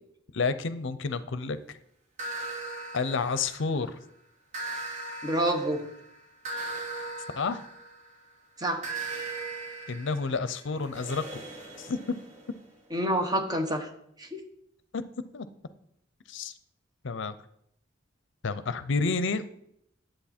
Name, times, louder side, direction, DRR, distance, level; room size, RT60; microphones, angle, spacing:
voice 1, 0.3-1.6 2.9-4.0 7.4-7.6 9.9-11.4 11.8-12.0 14.9-15.0 15.3-15.5 16.3-16.5 17.0-17.3 18.4-19.6, left 4 dB, 65° left, 13 dB, 0.6 m, -30 dB
sound 1, 2.2-3.9 4.5-8.2 8.8-12.6, right 3 dB, 40° right, 2.1 m, -39 dB
voice 2, 5.2-5.8 8.6-8.8 12.9-13.9 14.2-14.4, right 1 dB, 20° right, 4 dB, 1.2 m, -27 dB
11.0 x 7.7 x 4.3 m, 0.74 s
head